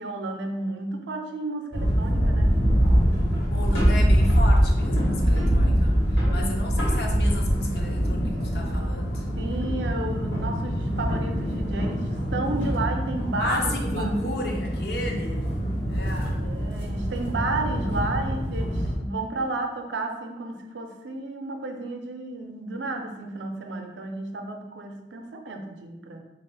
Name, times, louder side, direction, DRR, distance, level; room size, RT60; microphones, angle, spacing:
voice 1, 0.0-2.6 6.1-6.6 9.4-14.2 16.4-26.2, right 2 dB, 85° right, 4 dB, 0.5 m, -32 dB
sound 1, 1.7-18.9, equal, 85° left, 1.3 m, -24 dB
voice 2, 3.4-6.0 6.3-9.3 13.4-16.4, left 1 dB, 60° left, 1 dB, 0.6 m, -33 dB
3.7 x 2.4 x 3.3 m, 1.0 s
head